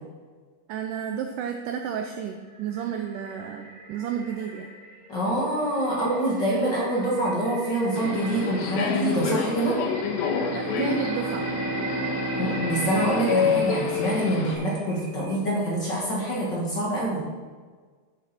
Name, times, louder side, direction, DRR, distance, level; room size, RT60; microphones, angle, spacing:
voice 1, 0.7-4.7 10.5-11.5, right 8 dB, 80° right, 5 dB, 1.9 m, -31 dB
sound 1, 2.1-15.4, right 2 dB, 55° right, 1.3 m, -41 dB
voice 2, 5.1-9.8 12.3-17.2, right 1 dB, 35° left, -5 dB, 2.2 m, -25 dB
Subway metro underground, 8.0-14.5, left 6 dB, 90° left, 2.8 m, -28 dB
Bowed string instrument, 9.9-14.7, right 3 dB, 15° right, 1.9 m, -33 dB
12.0 x 8.4 x 4.3 m, 1.5 s
omnidirectional pair, 4.3 m